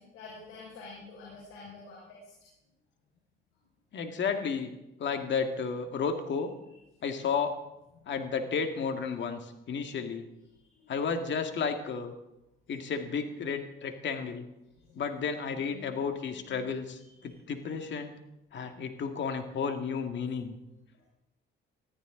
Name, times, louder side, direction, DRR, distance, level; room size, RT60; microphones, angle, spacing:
voice 1, 0.0-2.3 10.7-10.9 14.9-15.0 15.6-16.0 16.3-16.6 17.2-17.3 20.9-21.0, left 4 dB, 85° left, -4 dB, 5.6 m, -48 dB
voice 2, 3.9-4.7 5.0-6.5 7.0-7.6 8.1-10.3 10.9-12.1 12.7-14.5 14.9-18.1 18.5-20.6, left 5 dB, 60° left, 6 dB, 2.1 m, -32 dB
20.5 x 14.0 x 3.9 m, 0.90 s
cardioid pair, 80°, 21 cm